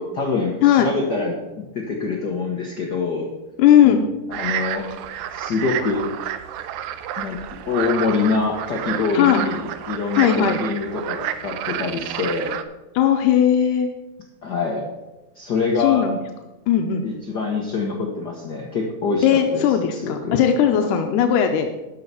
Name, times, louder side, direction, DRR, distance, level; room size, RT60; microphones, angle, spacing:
voice 1, 0.0-3.3 3.8-4.0 4.3-4.9 5.3-6.1 7.2-7.4 7.7-12.6 14.4-14.8 15.3-16.0 17.0-20.4, left 4 dB, 65° left, 0 dB, 1.0 m, -25 dB
voice 2, 3.6-4.0 9.1-9.4 10.2-10.6 13.0-13.9 15.8-16.2 16.7-17.0 19.2-21.7, left 9 dB, 90° left, 5 dB, 2.3 m, -17 dB
sound 1, 4.3-12.6, right 10 dB, 80° right, 2.0 m, -30 dB
12.0 x 5.7 x 6.9 m, 1.0 s
omnidirectional pair, 3.6 m